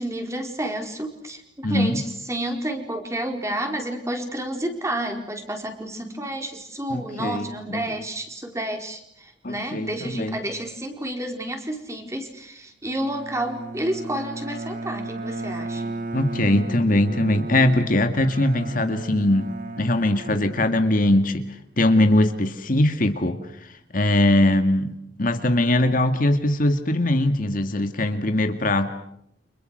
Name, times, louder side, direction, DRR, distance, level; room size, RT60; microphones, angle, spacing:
voice 1, 0.0-16.0, right 1 dB, 15° right, 4 dB, 4.5 m, -30 dB
voice 2, 1.6-2.0 6.9-7.8 9.4-10.4 16.1-21.4 21.8-23.4 23.9-28.9, left 1 dB, 50° left, 7 dB, 2.0 m, -21 dB
Bowed string instrument, 12.8-21.3, right 2 dB, 50° right, 2.3 m, -35 dB
30.0 x 27.0 x 6.5 m, 0.73 s
head